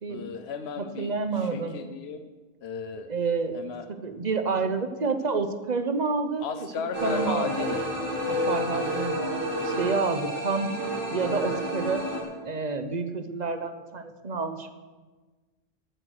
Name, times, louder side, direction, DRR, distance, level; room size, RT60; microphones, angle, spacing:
voice 1, 0.1-1.1 1.4-2.3 2.6-3.1 3.5-3.9 6.4-7.8, left 5 dB, 80° left, 8 dB, 1.0 m, -34 dB
voice 2, 0.8-1.8 3.1-3.6 4.0-6.5 6.8-7.7 8.3-10.7 11.1-12.0 12.4-14.7, right 4 dB, 45° right, 8 dB, 1.1 m, -29 dB
sound 1, 6.9-12.2, equal, 55° left, 5.0 m, -30 dB
14.5 x 8.4 x 6.5 m, 1.3 s
omnidirectional pair, 1.1 m